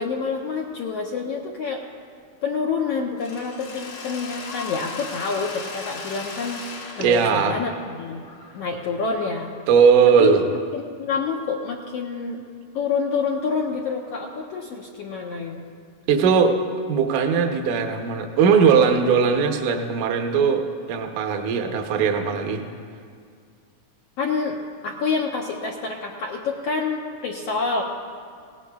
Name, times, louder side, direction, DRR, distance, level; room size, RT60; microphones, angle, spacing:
voice 1, 0.0-1.8 2.4-6.6 7.0-8.2 8.5-9.5 10.2-10.4 10.7-12.4 12.7-15.6 24.2-24.6 24.8-27.8, left 5 dB, 80° left, 0 dB, 1.4 m, -27 dB
Mechanisms, 3.2-9.1, left 4 dB, 55° left, 1.3 m, -37 dB
voice 2, 7.0-7.6 9.7-10.4 16.1-16.6 16.9-22.6, right 6 dB, 75° right, 4 dB, 2.3 m, -19 dB
18.0 x 17.5 x 2.3 m, 2.2 s
omnidirectional pair, 3.7 m